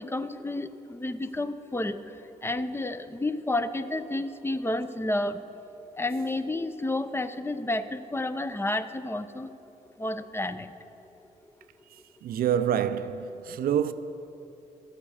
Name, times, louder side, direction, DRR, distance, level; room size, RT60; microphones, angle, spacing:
voice 1, 0.0-5.4 6.0-9.5 10.0-10.7, left 2 dB, 15° left, 0.5 m, -31 dB
voice 2, 12.2-13.9, right 9 dB, 70° right, 0.5 m, -26 dB
12.5 x 8.0 x 5.5 m
supercardioid pair, 55°, 16 cm